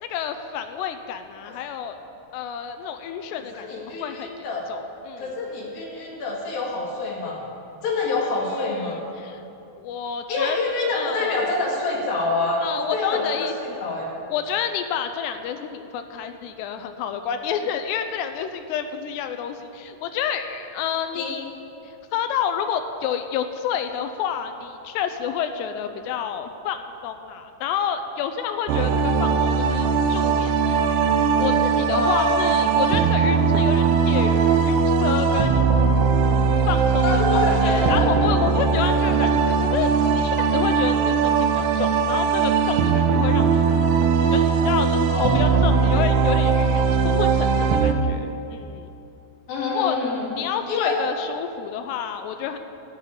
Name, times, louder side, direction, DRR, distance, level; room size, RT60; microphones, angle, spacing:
voice 1, 0.0-2.0 2.3-5.3 8.7-9.4 9.8-10.6 10.9-11.4 12.6-13.8 14.3-21.4 22.1-35.6 36.7-39.3 39.6-43.6 44.3-48.9 49.7-50.0 50.4-52.6, left 8 dB, 80° left, 8 dB, 2.6 m, -29 dB
voice 2, 3.4-4.7 5.2-7.5 7.8-9.0 10.3-14.1 21.1-21.5 31.9-32.6 37.0-38.0 38.8-38.9 39.2-39.3 45.1-45.7 49.5-50.3 50.7-51.0, left 3 dB, 60° left, -2 dB, 3.5 m, -26 dB
sound 1, 28.7-48.0, right 5 dB, 80° right, 2.5 m, -20 dB
11.5 x 9.4 x 8.7 m, 2.7 s
omnidirectional pair, 5.4 m